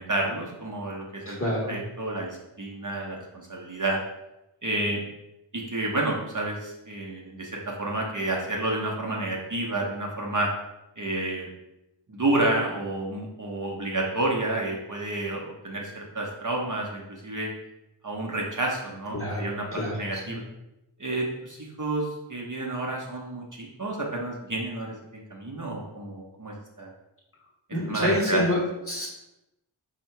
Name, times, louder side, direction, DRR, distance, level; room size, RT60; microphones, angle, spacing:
voice 1, 0.0-1.4 1.7-4.0 4.6-5.0 5.5-10.5 11.0-11.5 12.1-17.5 18.0-19.6 19.9-20.4 21.0-26.9 27.9-28.4, right 2 dB, 40° right, -2 dB, 0.8 m, -30 dB
voice 2, 1.2-1.8 19.1-20.4 27.7-29.1, left 1 dB, 25° left, -3 dB, 1.4 m, -28 dB
4.2 x 2.8 x 4.4 m, 0.92 s
wide cardioid pair, 50°, 49 cm